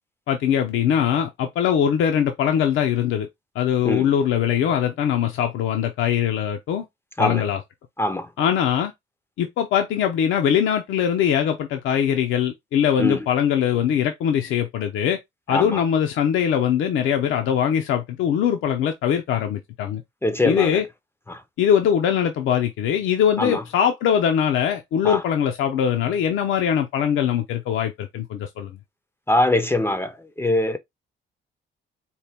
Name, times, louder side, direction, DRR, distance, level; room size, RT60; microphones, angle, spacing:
voice 1, 0.3-3.3 3.6-6.8 7.2-7.6 8.4-8.9 9.4-15.2 15.5-20.0 20.4-20.9 21.6-28.7, left 9 dB, 85° left, 0.6 m, -22 dB
voice 2, 20.2-20.7 23.4-23.6 25.0-25.2 29.3-30.1 30.4-30.8, left 1 dB, 10° left, 0.5 m, -22 dB
4.4 x 2.1 x 3.4 m
cardioid pair, 90°, 20 cm